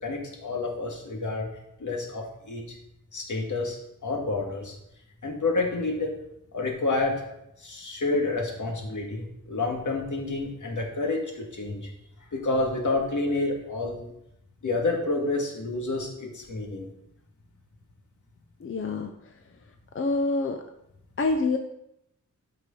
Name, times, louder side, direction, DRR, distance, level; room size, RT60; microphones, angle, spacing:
voice 1, 0.0-1.5 1.8-2.8 3.1-3.8 4.0-4.8 5.2-6.1 6.5-7.2 7.6-11.9 12.3-14.1 14.6-16.9, left 3 dB, 75° left, 0 dB, 2.1 m, -29 dB
voice 2, 18.6-19.1 19.9-20.6 21.2-21.6, left 3 dB, 45° left, 5 dB, 0.6 m, -26 dB
12.5 x 4.9 x 3.9 m, 0.81 s
wide cardioid pair, 140°, 31 cm